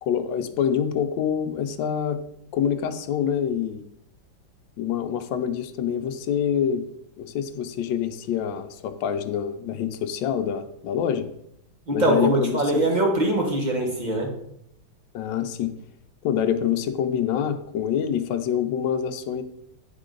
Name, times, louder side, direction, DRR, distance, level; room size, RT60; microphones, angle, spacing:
voice 1, 0.0-2.2 2.5-3.8 4.8-6.8 7.2-11.3 11.9-12.9 15.1-15.7 16.2-19.4, left 8 dB, 80° left, 8 dB, 1.3 m, -26 dB
voice 2, 11.9-14.3, right 1 dB, 30° right, 0 dB, 1.1 m, -22 dB
9.3 x 3.8 x 3.8 m, 0.76 s
omnidirectional pair, 2.1 m